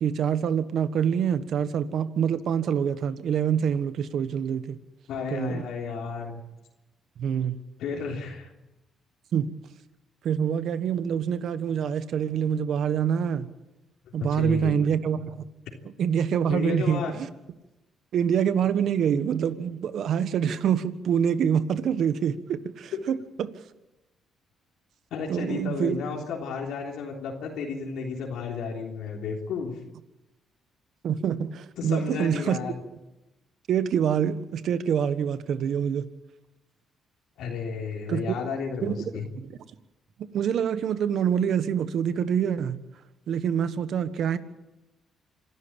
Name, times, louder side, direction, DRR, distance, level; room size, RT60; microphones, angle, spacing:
voice 1, 0.0-4.8 5.3-5.6 7.2-7.5 9.3-9.5 10.2-13.5 14.1-15.4 16.0-17.3 18.1-23.5 25.3-26.0 31.0-32.6 33.7-36.1 38.1-38.2 38.8-38.9 39.3-39.5 40.3-42.8 43.3-44.4, right 8 dB, 70° right, 1.4 m, -26 dB
voice 2, 5.1-6.4 7.8-8.5 14.0-14.8 16.5-17.2 22.9-23.0 25.1-29.8 31.8-32.8 37.4-39.3, left 5 dB, 80° left, 3.5 m, -32 dB
26.5 x 12.5 x 8.9 m
cardioid pair, 90°, 0 cm